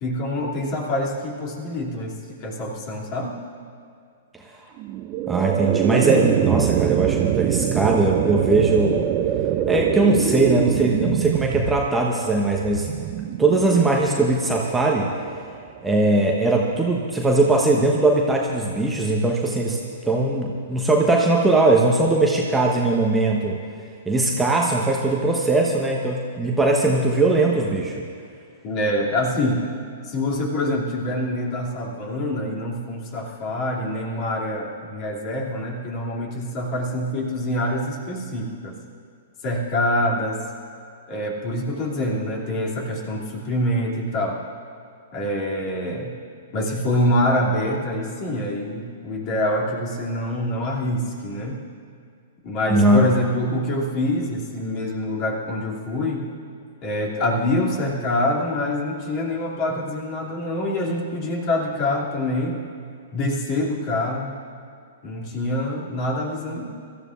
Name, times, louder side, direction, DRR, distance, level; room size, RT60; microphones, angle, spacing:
voice 1, 0.0-3.3 28.6-29.7 30.0-38.8 39.4-40.4 41.1-44.4 45.1-46.1 46.5-51.6 52.4-56.3 56.8-62.6 63.1-64.4 65.0-66.7, left 1 dB, 35° left, -2 dB, 2.8 m, -25 dB
sound 1, 4.8-15.9, right 11 dB, 35° right, 0.6 m, -25 dB
voice 2, 5.3-9.1 9.7-12.9 13.4-15.1 15.8-19.8 20.0-23.6 24.1-27.9 52.7-53.0, right 2 dB, 10° right, -1 dB, 1.2 m, -20 dB
24.5 x 14.0 x 2.6 m, 2.3 s
figure-of-eight pair, 110°, 0 cm